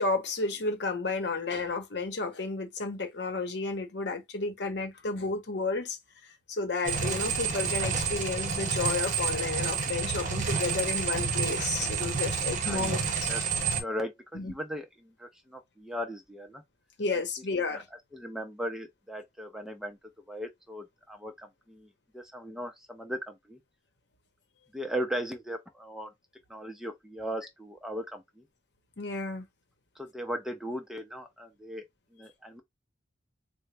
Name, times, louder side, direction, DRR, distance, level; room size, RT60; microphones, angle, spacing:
voice 1, 0.0-6.0 6.2-13.3 14.3-14.5 17.0-17.9 29.0-29.4, left 3 dB, 65° left, 0.9 m, -32 dB
sound 1, 6.8-13.8, right 5 dB, 45° right, 0.7 m, -29 dB
voice 2, 12.6-13.0 13.3-16.6 17.1-17.2 17.7-17.8 18.1-20.0 20.3-21.9 22.1-23.6 24.7-26.1 26.5-28.4 30.0-31.8 32.1-32.6, equal, 5° right, 0.5 m, -38 dB
3.8 x 2.1 x 3.2 m
head